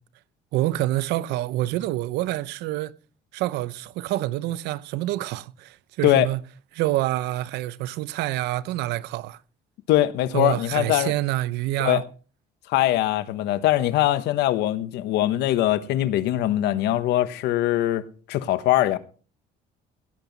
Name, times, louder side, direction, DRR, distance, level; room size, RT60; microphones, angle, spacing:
voice 1, 0.5-2.9 3.3-6.4 6.7-9.4 10.3-12.0, right 16 dB, 90° right, 0.7 m, -27 dB
voice 2, 9.9-11.1 11.8-12.0 12.7-19.0, left 14 dB, 85° left, 1.1 m, -22 dB
17.0 x 9.1 x 4.0 m
cardioid pair, 110°, 17 cm